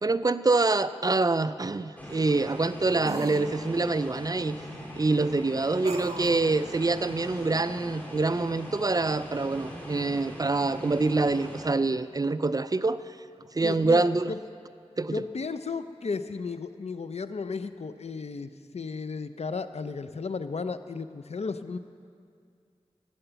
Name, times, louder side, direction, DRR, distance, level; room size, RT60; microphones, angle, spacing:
voice 1, 0.0-4.6 5.0-13.2 13.5-14.3 15.0-15.2, right 3 dB, 35° right, 13 dB, 0.4 m, -26 dB
sound 1, 0.7-0.8 3.0-3.5 5.8-6.4, right 3 dB, 70° right, 1.1 m, -36 dB
sound 2, 2.0-11.6, left 1 dB, 15° left, 2.8 m, -41 dB
voice 2, 13.6-14.4 15.1-21.8, left 4 dB, 70° left, 11 dB, 0.5 m, -34 dB
13.5 x 9.0 x 6.9 m, 2.3 s
wide cardioid pair, 50°, 11 cm